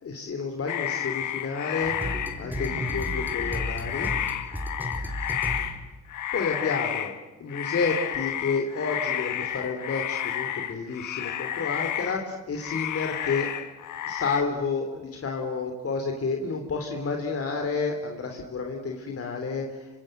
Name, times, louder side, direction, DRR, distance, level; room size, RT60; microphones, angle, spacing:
voice 1, 0.0-4.1 6.3-7.1 7.4-13.5 14.1-19.9, left 4 dB, 50° left, 3 dB, 3.5 m, -30 dB
sound 1, 0.7-5.8 6.1-7.2 7.5-12.3 12.6-14.4, left 11 dB, 75° left, 2.0 m, -31 dB
sound 2, 1.8-6.0, equal, 5° right, 4.1 m, -34 dB
27.0 x 25.0 x 7.9 m, 1.1 s
cardioid pair, 90°, 30 cm